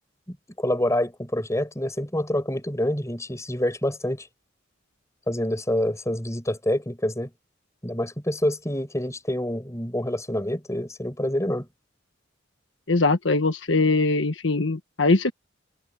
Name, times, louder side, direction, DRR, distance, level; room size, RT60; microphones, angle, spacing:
voice 1, 0.3-4.3 5.3-7.3 7.8-11.7, left 1 dB, 15° left, 6.1 m, -27 dB
voice 2, 12.9-15.3, left 3 dB, 70° left, 1.4 m, -21 dB
head